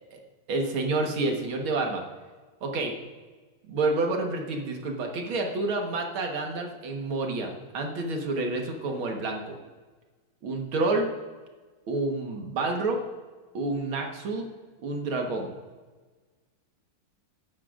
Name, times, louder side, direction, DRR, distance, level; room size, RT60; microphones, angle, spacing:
voice 1, 0.5-2.0 2.6-2.9 3.7-9.5 10.4-11.1 11.9-13.0 13.5-14.5 14.8-15.5, right 2 dB, 75° right, 2 dB, 2.2 m, -29 dB
16.5 x 11.5 x 2.5 m, 1.3 s
omnidirectional pair, 2.3 m